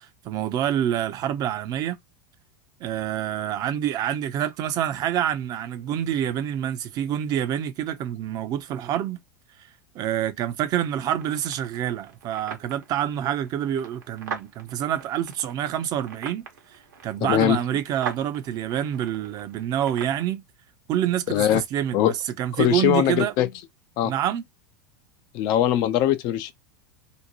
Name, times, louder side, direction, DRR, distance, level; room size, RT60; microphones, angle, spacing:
voice 1, 0.0-2.0 2.8-9.2 9.9-20.4 20.9-23.3 24.0-24.4, right 11 dB, 35° right, 0.6 m, -27 dB
sound 1, 11.2-20.2, right 6 dB, 65° right, 0.9 m, -41 dB
voice 2, 17.2-17.6 21.3-21.6 21.9-22.1 22.6-23.5 24.0-24.1 25.3-26.5, left 12 dB, 40° left, 0.4 m, -21 dB
2.6 x 2.2 x 3.0 m
figure-of-eight pair, 85°, 10 cm